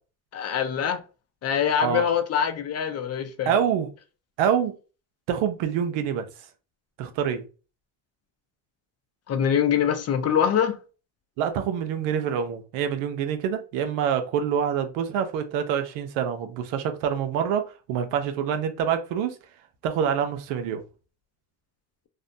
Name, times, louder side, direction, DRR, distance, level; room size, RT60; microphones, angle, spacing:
voice 1, 0.3-1.0 1.4-3.5 9.3-10.8, left 8 dB, 35° left, 0.5 m, -24 dB
voice 2, 3.5-3.9 4.4-4.8 5.3-6.3 7.0-7.4 11.4-19.4 19.8-20.8, right 8 dB, 90° right, 0.6 m, -26 dB
2.5 x 2.1 x 2.6 m
cardioid pair, 95°, 44 cm